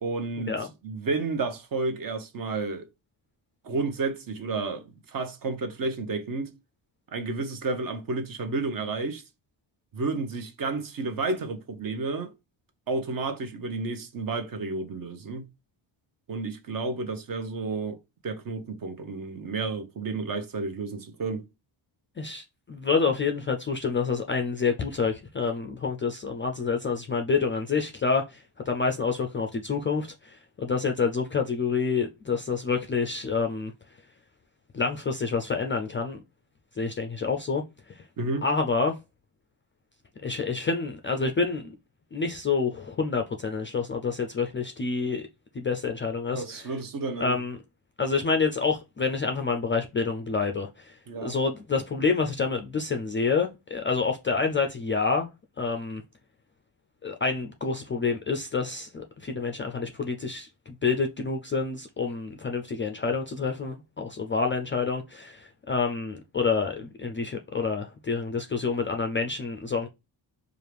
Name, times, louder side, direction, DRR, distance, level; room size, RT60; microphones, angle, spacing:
voice 1, 0.0-0.5 0.8-2.9 3.6-6.5 7.1-9.2 9.9-12.3 12.9-15.5 16.3-18.0 18.2-21.4 38.2-38.4 46.3-47.4 51.1-51.4, right 3 dB, 45° right, 0.9 m, -31 dB
voice 2, 22.2-33.7 34.7-36.2 36.8-37.6 37.9-38.0 38.4-38.9 40.2-41.7 42.1-45.2 45.5-46.7 47.2-47.6 48.0-55.3 55.6-56.0 57.0-69.9, left 4 dB, 30° left, 0.3 m, -28 dB
4.6 x 2.5 x 3.3 m
cardioid pair, 120°, 48 cm